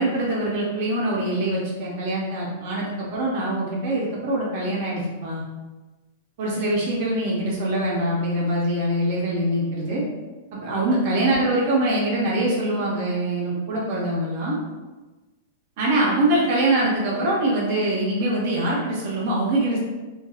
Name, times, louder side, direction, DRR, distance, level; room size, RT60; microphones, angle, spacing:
voice 1, 0.0-5.4 6.4-10.0 10.5-14.6 15.8-19.8, right 1 dB, 55° right, -4 dB, 0.6 m, -23 dB
2.7 x 2.3 x 2.3 m, 1.2 s
hypercardioid pair, 130°, 0 cm